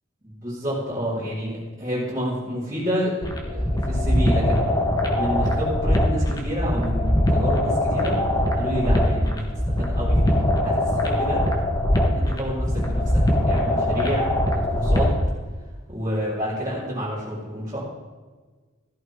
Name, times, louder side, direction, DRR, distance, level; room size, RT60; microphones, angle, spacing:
voice 1, 0.2-4.7 5.2-8.2 8.6-9.5 9.8-11.5 12.1-13.2 13.5-14.3 14.5-15.1 15.9-17.8, equal, 15° right, -10 dB, 4.2 m, -29 dB
sound 1, 3.2-15.2, left 1 dB, 20° left, 1.4 m, -22 dB
14.5 x 12.5 x 3.8 m, 1.3 s
head